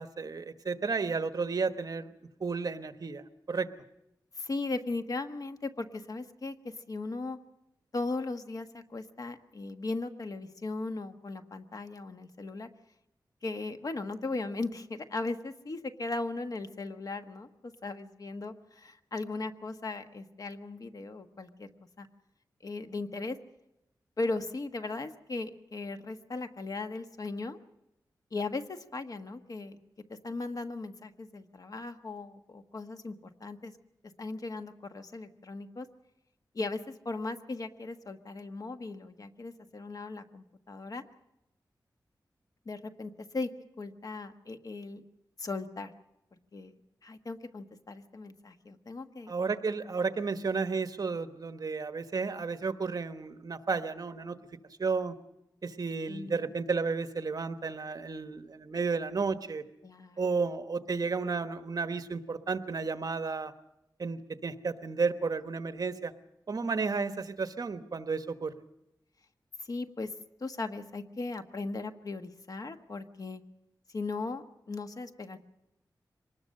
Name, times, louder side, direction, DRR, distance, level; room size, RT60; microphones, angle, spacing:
voice 1, 0.0-2.1 2.4-3.2 3.5-3.7 49.3-54.4 54.8-55.2 55.6-59.6 60.2-63.5 64.0-66.1 66.5-68.5, right 4 dB, 55° right, 9 dB, 1.3 m, -32 dB
voice 2, 4.4-7.4 7.9-12.7 13.4-21.7 22.0-22.1 22.6-23.4 24.2-27.6 28.3-29.8 30.1-33.7 34.2-35.9 36.5-41.0 42.6-43.5 43.8-45.0 45.4-45.9 46.5-49.3 56.1-56.5 59.8-60.2 69.7-70.1 70.4-73.4 73.9-75.4, left 3 dB, 50° left, 8 dB, 1.3 m, -37 dB
24.5 x 20.0 x 6.6 m, 0.86 s
wide cardioid pair, 105°, 8 cm